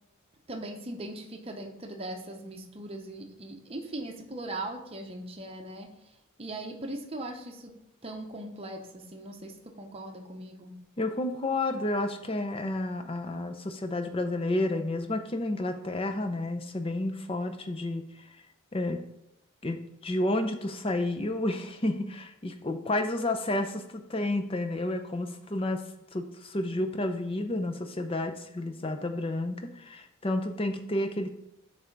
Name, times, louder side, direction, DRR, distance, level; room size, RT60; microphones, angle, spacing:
voice 1, 0.5-10.8, right 1 dB, 25° right, 3 dB, 0.7 m, -40 dB
voice 2, 11.0-18.0 18.7-19.0 19.6-25.8 26.1-31.3, left 1 dB, 25° left, 6 dB, 0.5 m, -31 dB
8.5 x 3.3 x 5.2 m, 0.84 s
head